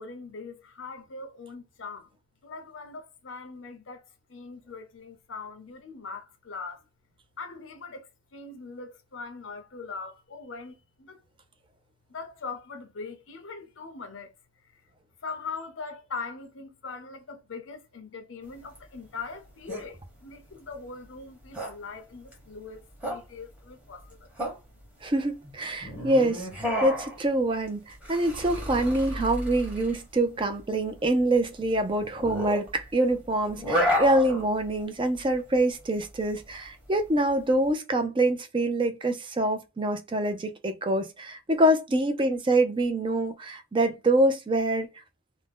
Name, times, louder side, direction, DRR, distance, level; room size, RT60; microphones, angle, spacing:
voice 1, 0.0-2.1 2.4-6.8 7.4-11.2 12.1-14.3 14.6-14.8 15.2-24.3, left 4 dB, 85° left, 0.7 m, -41 dB
sound 1, 18.4-37.7, equal, 5° right, 1.0 m, -33 dB
voice 2, 25.0-44.9, right 1 dB, 25° right, 0.4 m, -25 dB
2.6 x 2.1 x 3.5 m
head